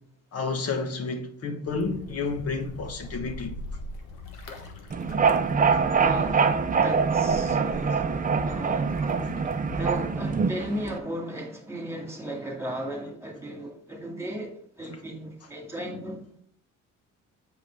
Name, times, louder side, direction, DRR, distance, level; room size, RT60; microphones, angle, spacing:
voice 1, 0.3-3.6, left 4 dB, 50° left, 1.3 m, -30 dB
sound 1, 1.7-10.6, left 2 dB, 90° left, 1.3 m, -41 dB
sound 2, 4.9-11.0, right 5 dB, 30° right, 0.6 m, -24 dB
voice 2, 6.0-9.1 9.7-16.2, right 1 dB, 10° right, 2.2 m, -36 dB
8.0 x 4.9 x 3.4 m
cardioid pair, 90°, 30 cm